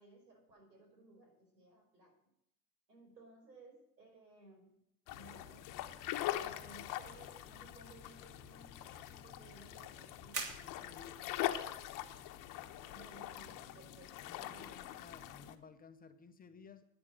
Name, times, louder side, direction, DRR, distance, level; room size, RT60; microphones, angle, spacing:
voice 1, 0.0-2.1 2.9-4.7 5.1-5.7 6.2-10.5 12.9-14.8, right 2 dB, 90° right, 2 dB, 5.3 m, -59 dB
sound 1, 5.1-15.5, left 13 dB, 40° left, 1.1 m, -43 dB
sound 2, 6.8-15.3, right 4 dB, 40° right, 3.2 m, -52 dB
voice 2, 10.4-11.3 14.2-16.9, left 5 dB, 20° left, 8 dB, 0.7 m, -57 dB
11.0 x 9.8 x 6.4 m, 0.78 s
hypercardioid pair, 100°, 48 cm